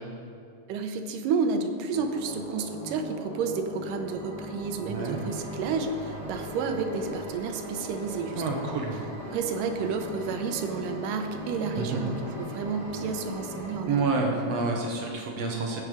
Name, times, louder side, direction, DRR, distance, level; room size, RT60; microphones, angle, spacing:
voice 1, 0.7-8.6 9.3-14.1, right 5 dB, 85° right, 6 dB, 2.4 m, -31 dB
sound 1, 1.9-13.8, left 1 dB, 45° left, 2.1 m, -40 dB
sound 2, 4.0-14.0, equal, 15° right, 3.0 m, -45 dB
voice 2, 4.9-5.2 8.4-8.9 11.7-12.0 13.9-15.8, right 3 dB, 60° right, 0 dB, 2.0 m, -28 dB
sound 3, 5.1-13.7, right 1 dB, 45° right, 3.4 m, -48 dB
15.5 x 6.8 x 4.9 m, 2.4 s
omnidirectional pair, 3.7 m